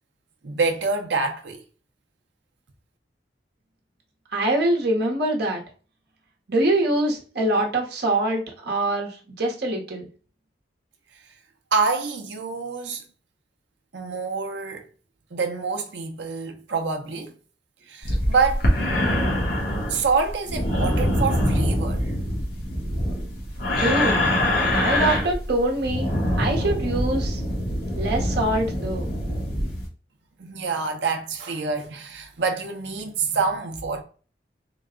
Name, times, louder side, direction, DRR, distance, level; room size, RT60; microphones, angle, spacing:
voice 1, 0.4-1.6 11.7-13.0 13.9-14.9 15.3-17.4 17.9-18.7 19.9-22.1 30.4-34.0, right 4 dB, 80° right, 0.7 m, -26 dB
voice 2, 4.3-5.6 6.5-10.1 23.8-24.2 24.7-26.1 26.4-27.4 28.0-29.1, right 1 dB, 65° right, 1.1 m, -24 dB
sound 1, 18.0-29.9, left 1 dB, 60° left, 1.3 m, -24 dB
3.9 x 2.3 x 3.6 m
head